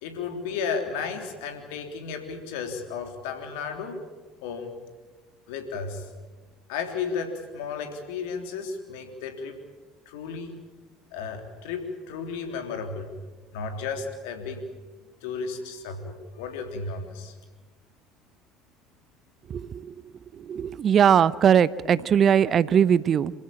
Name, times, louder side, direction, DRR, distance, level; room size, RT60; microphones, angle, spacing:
voice 1, 0.0-4.0 4.4-4.7 5.5-6.1 6.7-9.6 10.1-10.6 11.1-13.1 13.5-14.6 15.2-17.3, left 5 dB, 70° left, 5 dB, 3.5 m, -33 dB
voice 2, 19.5-19.9 20.5-23.3, right 8 dB, 40° right, 19 dB, 0.7 m, -20 dB
27.5 x 16.5 x 8.8 m, 1.3 s
figure-of-eight pair, 65°, 0 cm